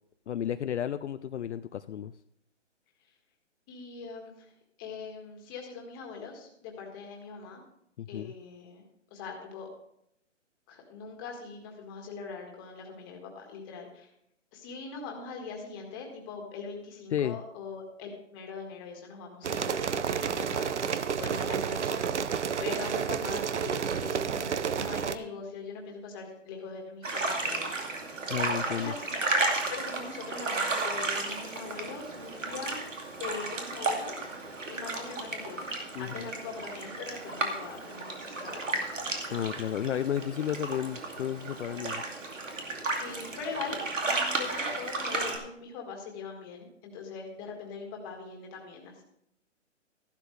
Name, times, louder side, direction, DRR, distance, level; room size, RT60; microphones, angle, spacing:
voice 1, 0.3-2.1 8.0-8.3 17.1-17.4 28.3-28.9 35.9-36.3 39.3-42.0, left 10 dB, 65° left, 11 dB, 0.5 m, -32 dB
voice 2, 3.7-4.5 4.8-7.6 8.1-8.8 9.1-9.7 10.7-14.1 14.5-22.3 22.6-27.7 28.7-29.1 29.7-32.9 33.2-34.3 34.7-35.6 36.0-38.8 43.0-43.8 44.0-49.0, left 5 dB, 20° left, 1 dB, 1.7 m, -42 dB
sound 1, 19.4-25.2, right 7 dB, 65° right, 0.8 m, -30 dB
sound 2, 27.0-45.4, right 3 dB, 85° right, 2.5 m, -33 dB
13.5 x 11.5 x 3.3 m, 0.76 s
hypercardioid pair, 155°, 37 cm